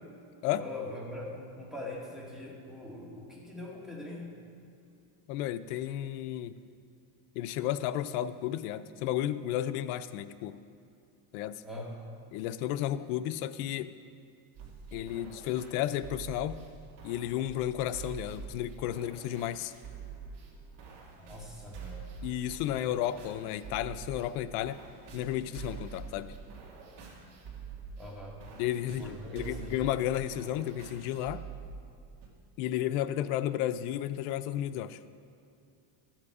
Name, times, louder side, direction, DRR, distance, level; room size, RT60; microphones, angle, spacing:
voice 1, 0.5-4.3 11.6-11.9 21.2-22.0 28.0-28.4 28.9-29.8, left 1 dB, ahead, -4 dB, 2.0 m, -42 dB
voice 2, 5.3-6.6 7.3-10.6 11.3-11.6 12.3-13.9 14.9-16.6 17.0-19.7 22.2-24.8 25.1-26.3 28.6-31.5 32.6-35.0, left 12 dB, 85° left, 12 dB, 0.6 m, -33 dB
sound 1, 14.5-32.3, right 5 dB, 60° right, 2.1 m, -46 dB
13.5 x 7.4 x 4.8 m, 2.6 s
cardioid pair, 135°, 45 cm